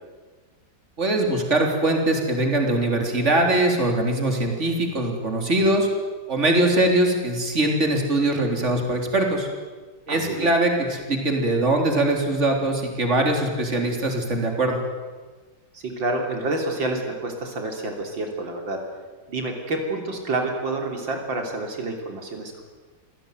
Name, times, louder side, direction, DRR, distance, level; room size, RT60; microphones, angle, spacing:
voice 1, 1.0-5.9 6.3-9.5 10.1-14.8, right 1 dB, 35° right, 3 dB, 3.9 m, -22 dB
voice 2, 10.1-10.5 15.7-18.8 19.3-22.6, right 2 dB, 75° right, 3 dB, 3.9 m, -28 dB
26.5 x 17.0 x 9.3 m, 1.4 s
omnidirectional pair, 2.1 m